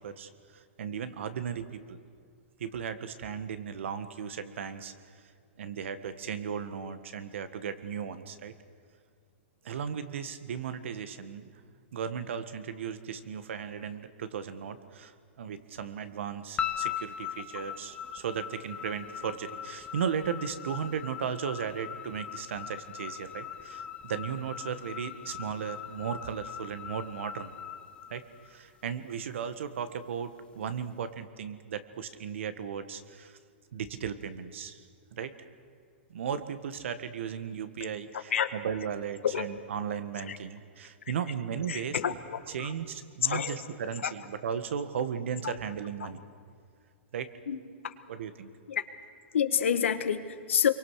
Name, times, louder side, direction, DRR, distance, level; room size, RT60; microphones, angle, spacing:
voice 1, 0.0-2.0 2.6-4.9 5.6-8.5 9.6-11.5 11.9-27.6 28.1-28.2 28.5-33.4 33.7-34.8 35.1-35.3 36.1-42.1 42.5-46.2 47.1-47.3 48.1-48.5, right 7 dB, 75° right, 11 dB, 1.7 m, -36 dB
sound 1, 16.6-28.9, left 9 dB, 15° left, 1.2 m, -40 dB
voice 2, 41.7-42.1 42.6-42.7 43.3-43.6 44.0-44.1 45.4-45.5 47.5-47.6 48.7-48.8 49.3-50.7, left 8 dB, 85° left, 9 dB, 1.7 m, -28 dB
27.0 x 23.5 x 6.5 m, 2.2 s
hypercardioid pair, 135°, 7 cm